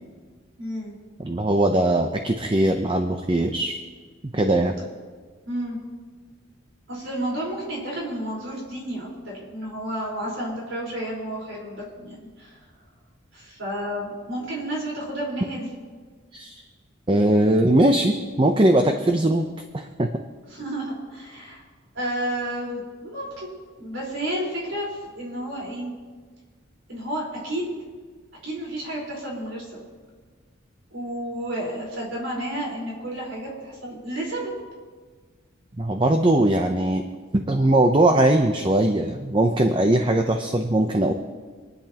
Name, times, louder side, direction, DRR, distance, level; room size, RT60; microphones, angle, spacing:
voice 1, 0.6-0.9 5.5-5.8 6.9-12.6 13.3-15.7 20.5-21.6 21.9-23.5 23.8-25.9 26.9-27.8 28.4-29.8 30.9-34.5, right 1 dB, 70° right, -4 dB, 4.3 m, -31 dB
voice 2, 1.2-3.8 4.2-4.7 16.3-16.5 17.1-19.5 19.7-20.1 35.8-37.0 37.3-41.1, right 1 dB, 25° right, 5 dB, 0.6 m, -20 dB
26.5 x 10.5 x 2.9 m, 1.5 s
head